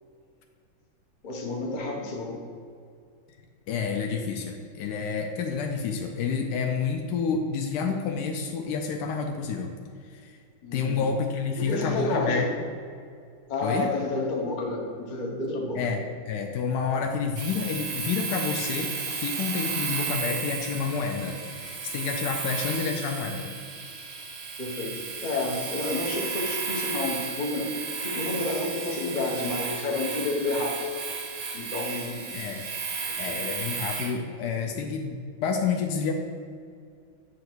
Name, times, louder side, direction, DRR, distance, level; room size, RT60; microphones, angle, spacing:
voice 1, 1.2-2.4 10.6-11.1 11.6-12.5 13.5-15.8 24.6-30.9 31.5-32.3 33.0-33.4, left 2 dB, 55° left, 0 dB, 0.5 m, -30 dB
voice 2, 3.7-9.7 10.1-10.4 10.7-12.5 13.6-13.9 15.7-23.5 32.3-32.6 33.2-36.1, left 5 dB, 75° left, 3 dB, 0.9 m, -29 dB
Domestic sounds home sounds, 17.4-34.2, right 5 dB, 65° right, 0.8 m, -33 dB
7.7 x 2.8 x 6.0 m, 2.3 s
omnidirectional pair, 2.3 m